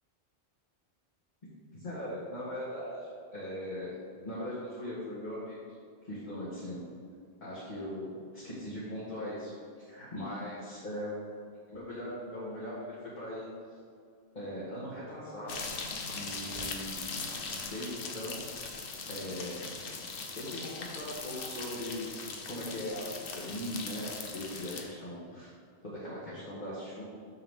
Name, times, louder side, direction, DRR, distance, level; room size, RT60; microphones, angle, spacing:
voice 1, 1.4-5.6 6.1-6.8 7.4-9.5 9.8-11.1 11.7-13.5 14.3-15.5 16.1-17.0 17.6-18.4 19.0-19.7 20.3-22.2 22.5-23.0 23.3-25.5 25.8-27.0, left 1 dB, 45° left, -10 dB, 1.6 m, -39 dB
sound 1, 15.5-24.8, left 4 dB, 60° left, 0.9 m, -40 dB
6.9 x 6.6 x 3.6 m, 2.3 s
omnidirectional pair, 1.1 m